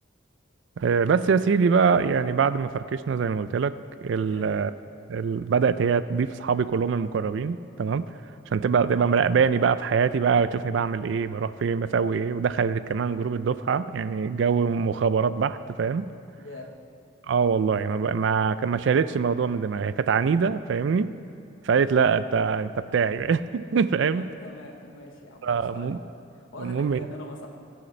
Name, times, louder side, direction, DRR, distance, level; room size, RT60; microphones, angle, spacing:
voice 1, 0.8-3.8 4.0-4.7 5.1-8.1 8.5-16.1 17.3-21.1 21.6-24.3 25.4-26.0 26.6-27.0, right 6 dB, 70° right, 14 dB, 0.4 m, -24 dB
voice 2, 16.4-16.7 24.0-26.0 26.3-27.5, left 1 dB, 90° left, 1 dB, 1.1 m, -43 dB
20.5 x 7.8 x 3.2 m, 2.4 s
head